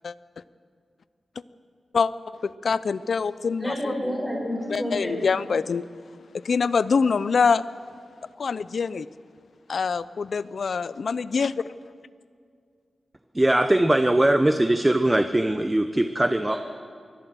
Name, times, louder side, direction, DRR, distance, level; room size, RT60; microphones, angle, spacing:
voice 1, 2.4-3.7 4.7-5.9 6.3-7.6 8.4-9.1 9.7-11.6, left 5 dB, 70° left, 16 dB, 0.6 m, -24 dB
voice 2, 3.6-5.3 16.5-16.6, equal, 10° left, -2 dB, 6.6 m, -29 dB
voice 3, 13.3-16.6, right 1 dB, 15° right, 8 dB, 0.9 m, -21 dB
23.0 x 17.0 x 7.7 m, 2.2 s
cardioid pair, 70°, 0 cm